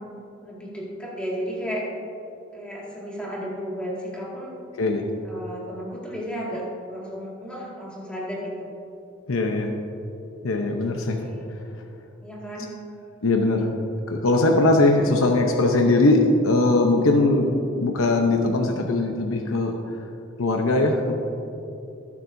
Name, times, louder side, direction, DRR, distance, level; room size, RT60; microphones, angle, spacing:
voice 1, 0.4-1.9 2.5-4.6 5.2-8.8 11.2-11.5 12.2-12.7, equal, 5° left, -5 dB, 2.1 m, -33 dB
voice 2, 9.3-9.7 10.4-11.2 13.2-13.7 14.1-19.7 20.4-21.1, left 2 dB, 80° left, 2 dB, 0.8 m, -20 dB
20.0 x 7.4 x 2.7 m, 2.7 s
head